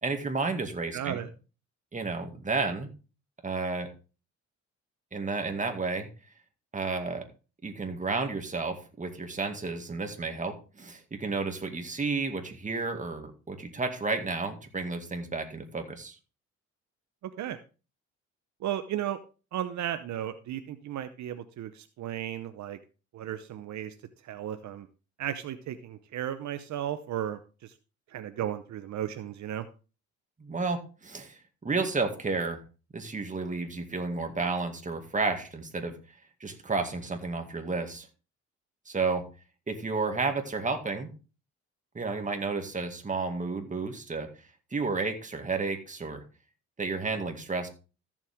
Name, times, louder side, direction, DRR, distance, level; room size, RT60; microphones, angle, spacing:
voice 1, 0.0-1.2 1.9-2.9 3.4-3.9 5.1-6.1 6.7-7.2 7.6-16.1 30.4-32.6 32.9-35.9 36.4-38.1 38.9-39.2 39.7-41.1 41.9-44.3 44.7-46.2 46.8-47.7, right 3 dB, 25° right, 5 dB, 2.1 m, -31 dB
voice 2, 0.9-1.3 17.2-17.6 18.6-19.2 19.5-22.8 23.1-23.9 24.2-24.9 25.2-27.7 28.1-29.7, right 11 dB, 70° right, 10 dB, 0.8 m, -35 dB
14.0 x 7.4 x 3.6 m, 0.34 s
cardioid pair, 90°, 30 cm